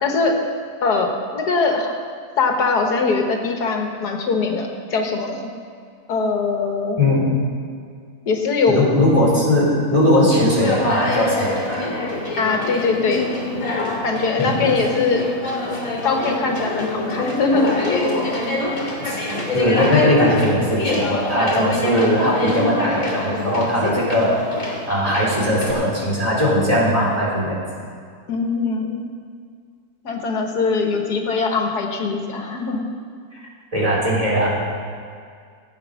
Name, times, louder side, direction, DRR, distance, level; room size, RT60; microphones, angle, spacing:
voice 1, 0.0-0.4 0.8-1.9 2.4-5.5 6.1-7.0 8.3-8.9 12.4-13.3 14.0-15.6 16.0-18.0 28.3-29.1 30.0-32.9, left 4 dB, 80° left, 2 dB, 1.9 m, -21 dB
voice 2, 7.0-7.3 8.7-11.8 14.4-14.6 19.0-19.2 19.5-24.4 24.6-27.6 33.7-34.5, left 1 dB, 20° right, -6 dB, 3.6 m, -19 dB
Conversation, 10.5-25.7, left 2 dB, 55° left, 3.0 m, -25 dB
16.0 x 8.7 x 6.3 m, 2.1 s
omnidirectional pair, 1.7 m